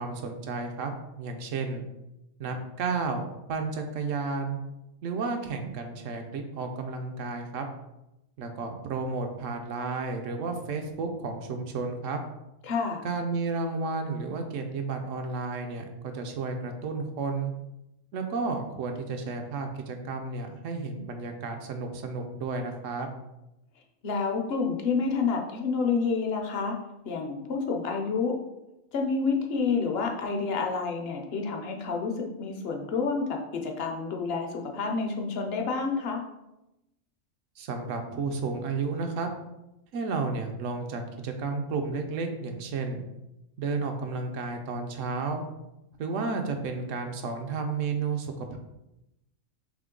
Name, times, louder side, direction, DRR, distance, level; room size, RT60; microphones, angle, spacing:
voice 1, 0.0-1.8 2.4-4.6 5.0-7.6 8.4-12.2 13.0-17.5 18.1-23.1 37.6-39.3 39.9-43.0 43.6-45.4 46.0-48.6, right 4 dB, 75° right, 5 dB, 0.9 m, -32 dB
voice 2, 12.6-13.0 24.0-26.8 27.0-28.3 28.9-36.2, left 4 dB, 60° left, 2 dB, 0.8 m, -29 dB
3.6 x 3.1 x 3.7 m, 0.92 s
omnidirectional pair, 1.4 m